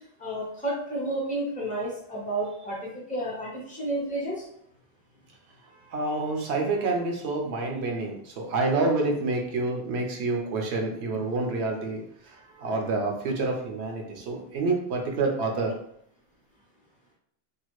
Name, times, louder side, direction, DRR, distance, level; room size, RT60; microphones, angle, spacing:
voice 1, 0.2-4.4, right 1 dB, 10° left, -5 dB, 0.9 m, -31 dB
voice 2, 5.7-15.7, right 3 dB, 90° right, 1 dB, 1.0 m, -28 dB
2.9 x 2.4 x 3.0 m, 0.70 s
omnidirectional pair, 1.1 m